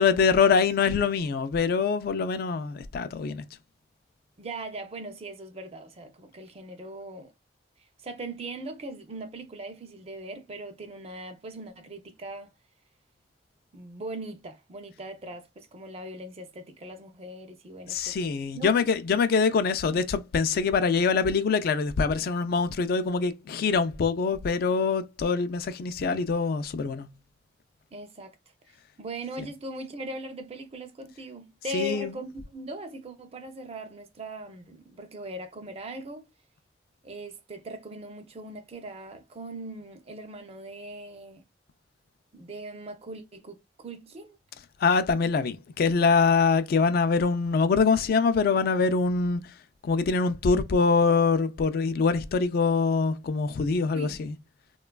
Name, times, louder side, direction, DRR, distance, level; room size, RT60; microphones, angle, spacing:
voice 1, 0.0-3.4 17.9-27.1 31.7-32.1 44.8-49.5 49.8-54.3, left 5 dB, 55° left, 0.3 m, -24 dB
voice 2, 4.4-7.3 8.0-12.5 13.7-18.7 27.9-28.4 29.0-36.3 37.0-41.4 42.3-44.3 53.9-54.2, right 1 dB, 35° right, 0.5 m, -40 dB
3.1 x 2.2 x 2.2 m
head